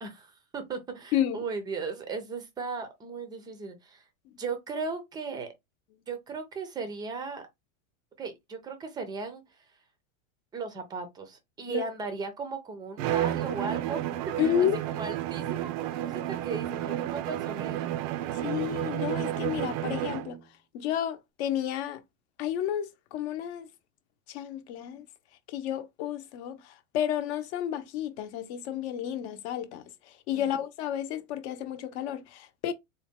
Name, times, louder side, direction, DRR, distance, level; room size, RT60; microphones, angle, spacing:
voice 1, 0.0-4.0 4.4-5.5 6.1-7.4 8.2-9.4 10.5-14.0 14.3-14.5 14.9-17.9, right 4 dB, 10° right, 0.5 m, -36 dB
voice 2, 1.1-1.4 11.7-11.9 14.4-14.8 18.3-20.4 20.7-22.0 22.4-23.7 24.3-25.0 25.5-29.8 30.3-32.7, left 10 dB, 50° left, 0.8 m, -31 dB
Bowed string instrument, 13.0-20.4, right 13 dB, 65° right, 0.5 m, -31 dB
4.0 x 2.1 x 3.5 m
supercardioid pair, 155°, 42 cm